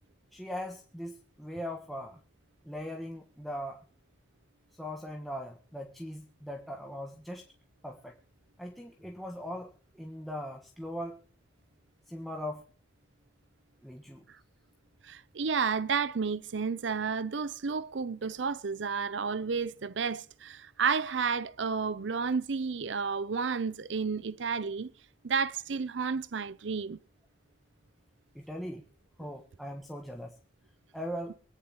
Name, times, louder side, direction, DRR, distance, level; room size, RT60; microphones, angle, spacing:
voice 1, 0.3-2.2 2.6-3.8 4.7-7.5 7.8-8.1 8.6-11.2 12.1-12.7 13.8-14.2 24.6-24.7 28.3-28.8 29.2-30.3 30.9-31.3, equal, ahead, 1.3 m, -40 dB
voice 2, 15.0-24.9 25.2-27.0, right 5 dB, 85° right, 0.6 m, -31 dB
24.0 x 9.6 x 3.0 m
head